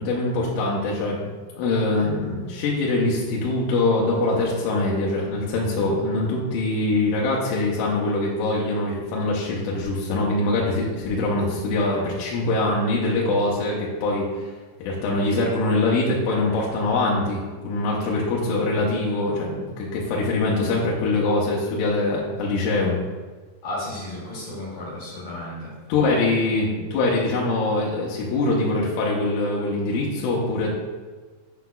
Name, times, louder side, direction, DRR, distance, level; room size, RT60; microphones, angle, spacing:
voice 1, 0.0-14.5 14.8-23.0 25.9-30.8, left 2 dB, 80° left, -4 dB, 3.3 m, -23 dB
voice 2, 23.6-25.7, left 1 dB, 50° left, -7 dB, 3.4 m, -33 dB
9.3 x 6.0 x 2.3 m, 1.4 s
omnidirectional pair, 5.7 m